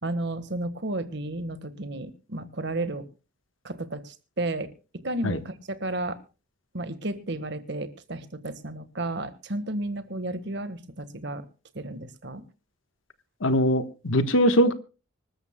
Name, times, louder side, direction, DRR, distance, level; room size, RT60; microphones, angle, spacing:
voice 1, 0.0-3.0 3.6-6.2 6.7-11.4 11.7-12.4, right 2 dB, 55° right, 12 dB, 1.4 m, -33 dB
voice 2, 13.4-14.7, equal, 75° left, 11 dB, 1.3 m, -21 dB
25.5 x 13.0 x 2.2 m, 0.32 s
head